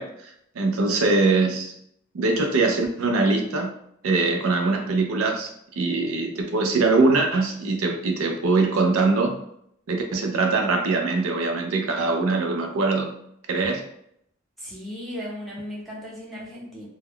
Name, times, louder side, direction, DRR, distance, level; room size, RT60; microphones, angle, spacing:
voice 1, 0.0-1.7 2.1-3.7 4.0-9.4 9.9-13.1 13.5-13.8, right 3 dB, 85° right, 0.4 m, -22 dB
voice 2, 14.6-16.9, equal, ahead, 0.7 m, -36 dB
2.2 x 2.1 x 3.5 m
head